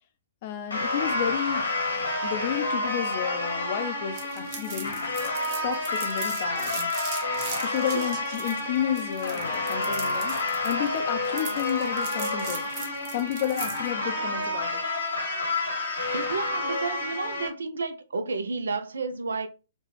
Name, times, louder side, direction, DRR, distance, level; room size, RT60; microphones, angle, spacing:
voice 1, 0.4-1.7 2.2-5.0 5.6-6.9 7.6-12.6 13.1-14.8, left 10 dB, 45° left, 0.5 m, -31 dB
sound 1, 0.7-17.5, left 2 dB, 80° left, 1.2 m, -29 dB
sound 2, 4.2-13.9, right 5 dB, 40° right, 0.7 m, -39 dB
voice 2, 16.1-19.5, right 4 dB, 70° right, 0.4 m, -31 dB
3.1 x 2.2 x 3.1 m
figure-of-eight pair, 120°, 0 cm